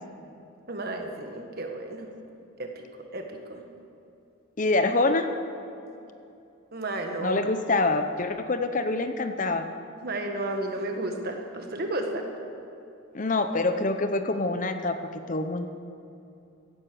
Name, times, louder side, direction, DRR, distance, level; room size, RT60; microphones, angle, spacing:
voice 1, 0.7-2.1 2.6-2.7 3.1-3.6 6.7-7.4 10.0-12.2, right 1 dB, 45° right, 3 dB, 1.6 m, -32 dB
voice 2, 4.6-5.3 7.2-9.7 13.1-15.7, left 2 dB, 40° left, 8 dB, 0.7 m, -26 dB
16.0 x 10.5 x 6.9 m, 2.7 s
head